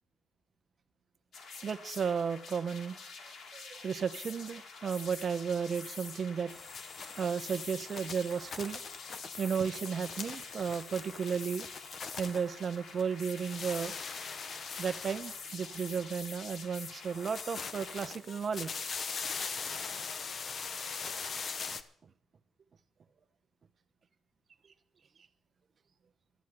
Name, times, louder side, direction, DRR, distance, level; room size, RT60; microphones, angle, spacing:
sound 1, 1.3-18.1, left 4 dB, 65° left, 2.8 m, -47 dB
voice 1, 1.6-3.0 3.5-6.5 7.2-8.8 9.4-11.7 12.2-13.9 14.8-18.9, right 6 dB, 45° right, 11 dB, 1.0 m, -34 dB
sound 2, 6.5-13.0 13.3-16.1 17.0-21.8, left 5 dB, 50° left, 1.0 m, -41 dB
12.5 x 7.3 x 9.7 m, 0.67 s
cardioid pair, 90°, 0 cm